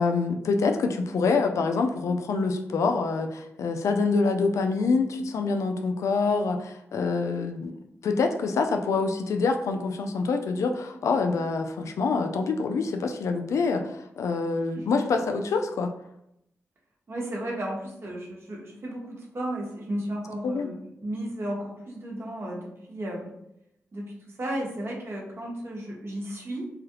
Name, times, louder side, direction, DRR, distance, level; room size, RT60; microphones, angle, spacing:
voice 1, 0.0-15.9 20.4-20.7, left 4 dB, 80° left, 6 dB, 0.4 m, -26 dB
voice 2, 17.1-23.3 23.9-26.7, right 1 dB, 50° right, -2 dB, 1.1 m, -34 dB
3.3 x 2.3 x 2.9 m, 0.81 s
cardioid pair, 50°, 5 cm